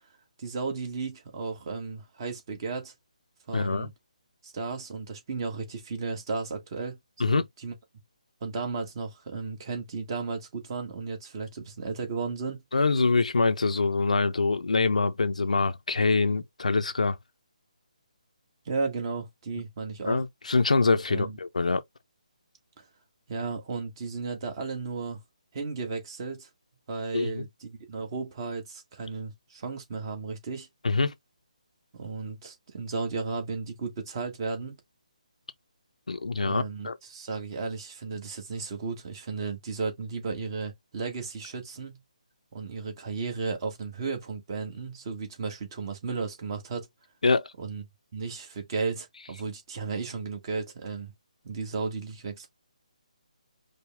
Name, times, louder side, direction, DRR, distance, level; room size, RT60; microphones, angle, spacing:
voice 1, 0.4-2.9 3.5-3.9 4.4-7.0 7.3-7.7 8.4-12.6 18.6-20.2 21.1-21.4 22.8-22.9 23.3-25.2 25.5-26.5 26.9-30.7 31.9-34.8 36.4-42.0 42.5-46.9 47.6-47.8 48.1-51.1 51.4-52.5, right 4 dB, 35° right, 1.5 m, -34 dB
voice 2, 3.5-3.9 7.2-7.4 12.7-17.2 20.1-21.8 27.1-27.5 30.8-31.1 36.1-37.0 47.2-47.5, left 3 dB, 70° left, 0.6 m, -25 dB
5.0 x 2.2 x 3.4 m
figure-of-eight pair, 145°, 4 cm